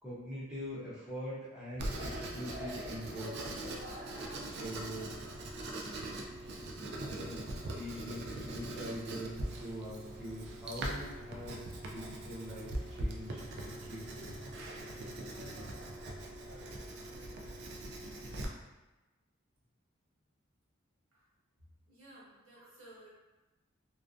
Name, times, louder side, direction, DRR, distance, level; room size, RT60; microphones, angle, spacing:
voice 1, 0.0-3.7 4.5-5.2 7.0-7.4 7.7-14.4 22.6-22.7, equal, 5° right, -10 dB, 0.6 m, -43 dB
Writing, 1.8-18.5, right 1 dB, 55° right, 0.3 m, -41 dB
voice 2, 21.9-23.1, right 1 dB, 70° right, -7 dB, 1.1 m, -56 dB
2.5 x 2.2 x 2.4 m, 1.1 s
head